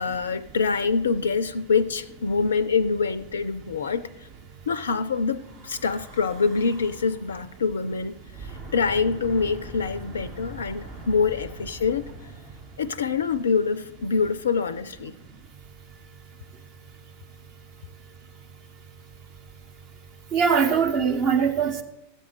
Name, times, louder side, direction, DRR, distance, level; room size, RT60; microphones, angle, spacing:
voice 1, 0.0-4.3 4.7-12.1 12.8-15.1, left 5 dB, 65° left, 0.4 m, -25 dB
Breathing / Wind, 5.3-7.3 8.2-13.6, right 2 dB, 55° right, 4.1 m, -43 dB
voice 2, 20.3-21.8, right 6 dB, 40° right, 1.2 m, -21 dB
13.5 x 8.3 x 4.6 m
figure-of-eight pair, 90°, 0 cm